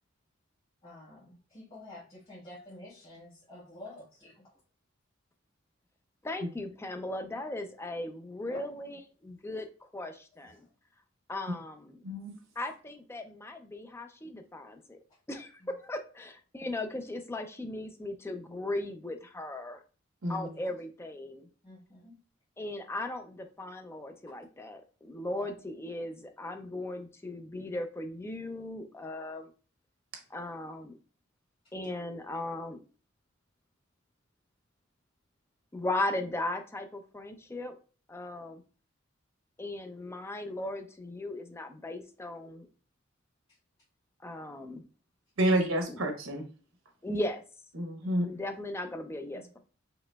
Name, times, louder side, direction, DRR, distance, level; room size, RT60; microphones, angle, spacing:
voice 1, 0.8-4.6 8.5-8.7 10.4-10.7 15.1-15.2 15.6-15.7 20.2-20.8 21.6-22.2 24.3-24.4 25.2-25.5 31.6-31.7 43.5-43.6 48.0-48.4 49.3-49.6, left 1 dB, 30° left, -10 dB, 1.5 m, -50 dB
voice 2, 6.3-9.7 9.9-10.7 11.3-12.0 12.6-15.0 15.3-19.8 20.3-21.5 22.6-29.5 30.3-31.0 31.7-32.8 35.7-37.7 38.1-38.6 39.6-42.7 44.2-44.8 45.9-46.0 47.0-47.4 48.2-49.6, left 1 dB, 15° left, 6 dB, 0.4 m, -37 dB
voice 3, 12.0-12.4 20.2-20.5 45.4-46.4 47.7-48.2, right 1 dB, 80° right, 4 dB, 0.9 m, -29 dB
4.9 x 2.9 x 2.3 m, 0.37 s
head